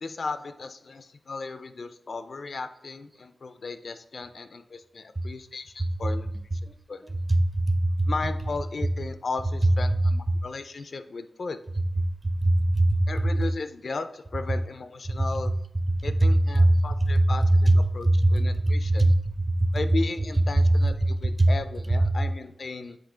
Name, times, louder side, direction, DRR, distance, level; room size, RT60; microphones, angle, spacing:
voice 1, 0.0-6.6 6.9-7.0 8.1-11.6 13.1-15.5 16.0-19.1 19.7-23.0, left 3 dB, 50° left, 10 dB, 0.4 m, -36 dB
voice 2, 7.5-8.1 12.4-13.0 16.6-16.8 18.0-18.3 18.7-19.1 19.5-19.7 21.4-21.5, right 1 dB, 20° right, 8 dB, 0.6 m, -21 dB
8.0 x 3.0 x 4.9 m, 0.81 s
wide cardioid pair, 115°, 0 cm